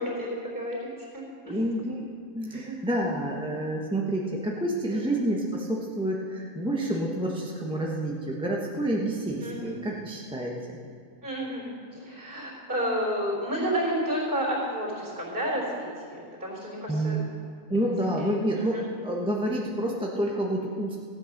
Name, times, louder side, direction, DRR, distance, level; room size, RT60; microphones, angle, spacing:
voice 1, 0.0-1.6 2.5-2.8 4.9-5.1 9.4-9.7 11.2-17.2 17.8-17.9 18.2-18.8, equal, 40° right, -3 dB, 4.1 m, -31 dB
voice 2, 1.5-2.1 2.3-10.5 16.9-17.2 17.7-21.0, right 1 dB, 5° right, -2 dB, 1.1 m, -28 dB
15.5 x 8.8 x 6.5 m, 2.2 s
omnidirectional pair, 1.4 m